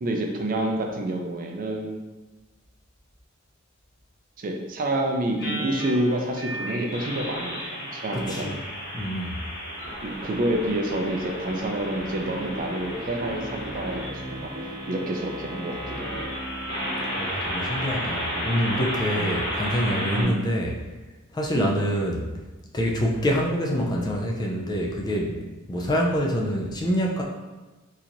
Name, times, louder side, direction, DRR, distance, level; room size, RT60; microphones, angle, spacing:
voice 1, 0.0-2.1 4.4-8.6 10.0-14.5 14.9-16.2 18.3-18.5 19.2-19.4 20.1-20.5 21.5-21.8 25.8-26.0, right 1 dB, 45° right, 2 dB, 0.4 m, -28 dB
sound 1, 5.4-20.2, equal, 55° left, 1.1 m, -33 dB
voice 2, 8.1-8.6 8.9-9.4 17.2-20.8 21.3-22.3 22.7-27.2, equal, 20° left, -1 dB, 0.4 m, -26 dB
sound 2, 11.9-17.3, equal, 70° right, 1.1 m, -38 dB
4.3 x 2.8 x 2.5 m, 1.2 s
head